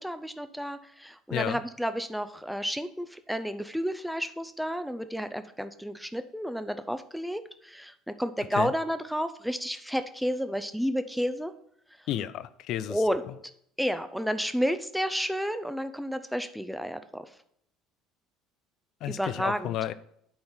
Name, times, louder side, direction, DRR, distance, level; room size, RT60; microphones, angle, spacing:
voice 1, 0.0-11.5 12.9-13.2 13.8-17.2 19.1-19.8, equal, ahead, 10 dB, 0.7 m, -31 dB
voice 2, 1.3-1.6 8.5-8.7 12.1-13.0 19.0-19.9, left 12 dB, 60° left, 15 dB, 0.5 m, -32 dB
8.7 x 4.4 x 5.7 m, 0.69 s
hypercardioid pair, 65°, 0 cm